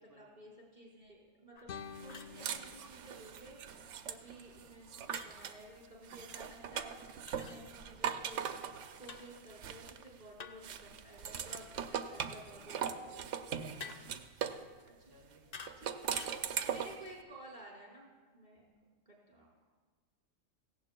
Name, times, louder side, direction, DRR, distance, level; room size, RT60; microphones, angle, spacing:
voice 1, 0.0-13.6 13.9-14.1 14.8-15.1 15.8-18.7 19.1-19.6, right 1 dB, 40° right, -4 dB, 5.0 m, -54 dB
sound 1, 1.5-1.7 2.1-2.4 5.1-5.3 7.3-7.6 9.1-9.3 10.4-10.8 13.8-14.2 15.5-15.8 16.1-16.4, left 5 dB, 45° left, 0.5 m, -49 dB
sound 2, 1.7-4.7, left 6 dB, 65° left, 1.0 m, -51 dB
sound 3, 2.0-5.6 6.0-10.2 10.6-14.6 15.7-17.1, right 8 dB, 75° right, 1.0 m, -40 dB
voice 2, 12.6-13.8 15.0-16.3, right 1 dB, 15° right, -4 dB, 1.9 m, -65 dB
18.0 x 15.5 x 2.2 m, 1.4 s
omnidirectional pair, 1.3 m